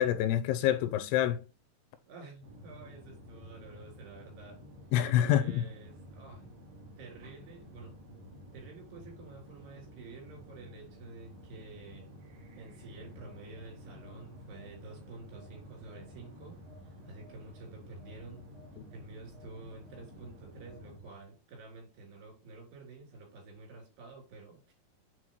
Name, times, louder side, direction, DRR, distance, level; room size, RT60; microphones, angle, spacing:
voice 1, 0.0-1.4 4.9-5.6, left 11 dB, 85° left, 2.7 m, -26 dB
voice 2, 2.1-4.6 5.2-6.5 7.0-8.0 8.5-12.1 12.5-16.6 16.8-18.4 18.9-24.7, right 3 dB, 75° right, 5.4 m, -50 dB
sound 1, 2.4-21.0, equal, 50° right, 3.9 m, -51 dB
Telephone, 13.0-15.0 15.3-21.2, left 2 dB, 25° left, 0.8 m, -58 dB
9.0 x 4.3 x 3.1 m
omnidirectional pair, 4.7 m